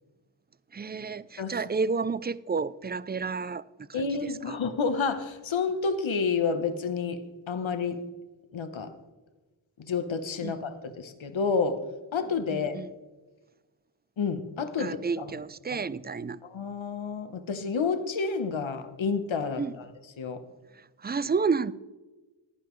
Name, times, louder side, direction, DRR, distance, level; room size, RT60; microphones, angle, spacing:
voice 1, 0.7-3.6 3.9-4.6 10.4-10.6 12.5-12.9 14.8-16.4 19.6-19.7 21.0-21.7, right 5 dB, 25° right, 0.3 m, -31 dB
voice 2, 3.9-7.2 7.5-8.0 8.5-8.9 9.8-11.8 12.1-12.8 14.2-15.3 15.7-15.8 16.4-19.9 20.2-20.4, left 5 dB, 75° left, 1.1 m, -29 dB
15.5 x 10.5 x 3.1 m
cardioid pair, 40°, 48 cm